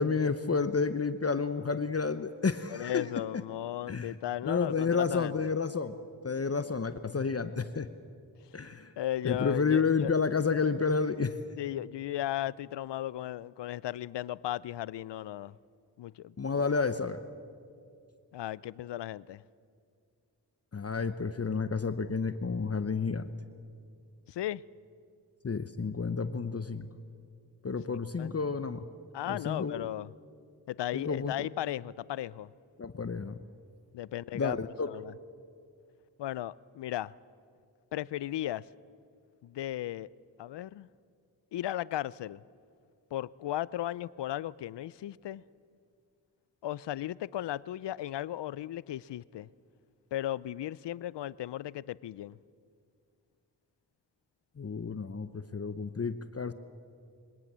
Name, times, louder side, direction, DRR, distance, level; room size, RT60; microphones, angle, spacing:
voice 1, 0.0-3.1 3.9-4.1 4.4-5.9 6.2-7.9 8.5-8.9 9.2-11.4 16.4-17.2 20.7-23.3 25.4-26.9 27.6-28.9 29.3-29.9 30.9-31.5 32.8-33.4 34.3-34.9 54.6-56.5, left 5 dB, 35° left, 0.9 m, -30 dB
voice 2, 2.7-5.5 8.7-10.1 11.6-15.5 16.0-16.3 18.3-19.4 24.3-24.6 28.2-28.3 29.1-30.1 30.7-32.5 33.9-34.6 34.8-35.1 36.2-37.1 37.9-38.7 39.4-40.1 40.4-40.9 41.5-42.4 43.1-45.4 46.6-49.5 50.1-52.4, left 13 dB, 80° left, 0.5 m, -36 dB
23.0 x 17.5 x 7.4 m
cardioid pair, 45°, 42 cm